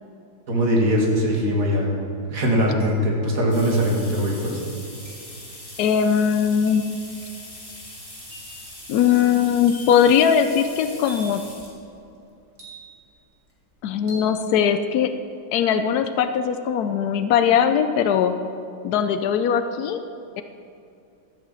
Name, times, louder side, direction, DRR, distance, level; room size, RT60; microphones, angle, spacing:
voice 1, 0.5-1.9 2.3-4.6, equal, 40° right, -2 dB, 2.4 m, -21 dB
sound 1, 1.6-1.7 2.8-3.3 5.1-5.4 6.7-7.0 8.3-8.6 9.7-10.1 11.1-11.5 12.6-13.1 14.1-14.4, equal, 75° right, 3.3 m, -43 dB
sound 2, 3.5-11.8 12.6-12.7 14.0-14.1 14.4-14.5 14.8-14.9, left 1 dB, 10° left, 2.7 m, -41 dB
voice 2, 5.8-6.8 8.9-11.4 13.8-15.1 15.5-18.3 18.8-20.0, left 8 dB, 85° left, 9 dB, 0.8 m, -20 dB
13.5 x 6.6 x 7.5 m, 2.6 s
omnidirectional pair, 2.3 m